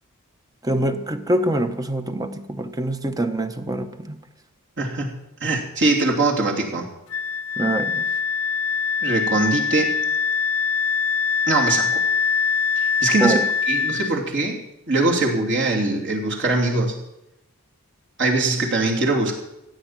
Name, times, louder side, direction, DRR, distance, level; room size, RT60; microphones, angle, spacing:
voice 1, 0.6-4.2 7.6-8.1 13.2-13.4, right 1 dB, 15° right, 8 dB, 0.9 m, -24 dB
voice 2, 4.8-5.1 5.4-6.8 9.0-9.9 11.5-11.9 12.8-13.4 13.7-14.6 14.9-17.0 18.2-19.3, right 2 dB, 55° right, 0 dB, 3.0 m, -22 dB
Wind instrument woodwind instrument, 7.1-14.2, left 6 dB, 60° left, 0.5 m, -23 dB
16.0 x 9.1 x 7.4 m, 0.88 s
head